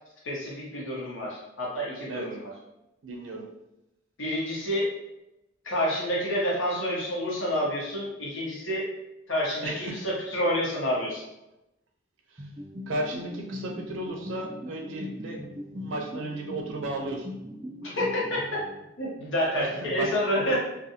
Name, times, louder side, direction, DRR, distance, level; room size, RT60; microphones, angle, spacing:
voice 1, 0.2-2.5 4.2-4.9 5.6-8.9 9.3-11.2 17.8-18.4 19.0-20.6, equal, 85° left, -5 dB, 1.0 m, -28 dB
voice 2, 3.0-3.5 9.6-10.0 12.3-12.4 12.9-15.4 15.7-17.3 19.5-20.6, right 2 dB, 85° right, 1 dB, 0.6 m, -34 dB
sound 1, 12.4-19.1, left 1 dB, 20° right, 0.3 m, -40 dB
2.6 x 2.4 x 2.7 m, 0.90 s
head